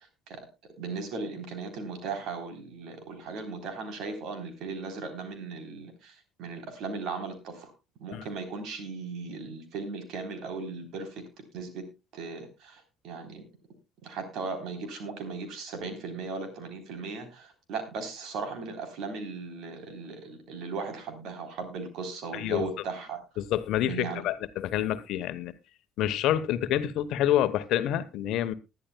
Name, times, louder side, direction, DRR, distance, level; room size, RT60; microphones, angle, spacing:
voice 1, 0.8-7.7 8.0-11.2 11.5-11.8 12.1-13.4 14.0-23.2 23.8-24.2, right 4 dB, 60° right, 3.6 m, -37 dB
voice 2, 22.3-22.7 23.4-25.5 26.0-28.5, left 12 dB, 60° left, 1.0 m, -27 dB
20.0 x 11.5 x 2.2 m
figure-of-eight pair, 50°, 0 cm